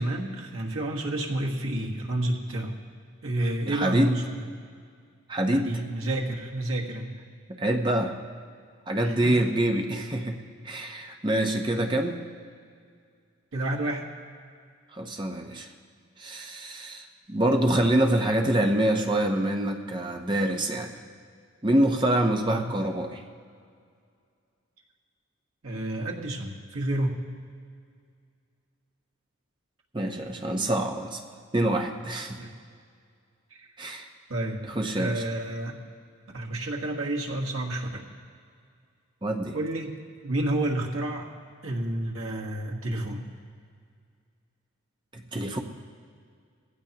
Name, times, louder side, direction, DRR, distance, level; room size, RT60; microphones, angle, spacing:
voice 1, 0.0-2.7 3.2-4.2 5.5-7.1 9.0-9.5 13.5-14.1 22.5-22.6 25.6-27.2 32.4-32.5 33.6-33.7 34.3-34.6 35.0-35.8 36.3-38.0 39.5-40.0 40.2-41.3 41.6-43.2, right 1 dB, 80° right, 0 dB, 1.5 m, -30 dB
voice 2, 3.7-4.1 5.3-5.8 7.5-8.1 8.9-12.3 14.9-15.7 16.2-21.0 21.6-23.2 29.9-31.2 31.5-32.4 33.8-34.1 34.7-35.3 39.2-39.6 45.1-45.6, right 1 dB, 20° right, 3 dB, 0.8 m, -26 dB
18.5 x 15.5 x 2.9 m, 2.2 s
head